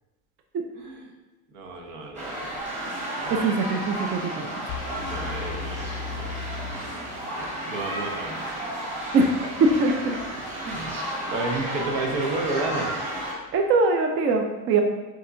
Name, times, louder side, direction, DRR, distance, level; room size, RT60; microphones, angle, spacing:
voice 1, 0.7-1.1 1.5-2.6 3.2-3.5 5.0-7.1 7.3-8.5 9.1-12.9, right 3 dB, 75° right, 1 dB, 1.0 m, -33 dB
sound 1, 2.2-13.3, right 1 dB, 15° right, 1.2 m, -33 dB
voice 2, 3.4-4.5 9.1-9.3 9.6-10.1 13.5-14.8, right 3 dB, 35° right, 3 dB, 0.4 m, -22 dB
sound 2, 4.7-7.6, left 5 dB, 60° left, 0.5 m, -36 dB
6.4 x 2.8 x 2.5 m, 1.2 s
supercardioid pair, 115°, 41 cm